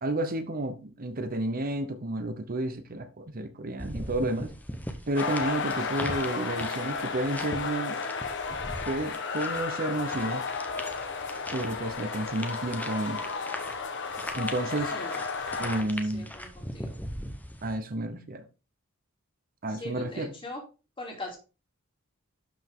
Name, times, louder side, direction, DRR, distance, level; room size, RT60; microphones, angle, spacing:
voice 1, 0.0-4.5 5.1-8.0 8.9-10.5 11.5-13.2 14.4-14.9 15.6-16.3 17.6-18.4 19.6-20.3, right 1 dB, 45° right, 0.9 m, -31 dB
sound 1, 3.8-17.7, left 1 dB, 10° left, 1.1 m, -40 dB
sound 2, 5.1-15.8, left 4 dB, 60° left, 1.2 m, -33 dB
voice 2, 14.9-15.2 15.7-17.0 19.7-20.6 21.0-21.4, left 1 dB, 25° left, 3.1 m, -41 dB
12.0 x 5.2 x 3.7 m
head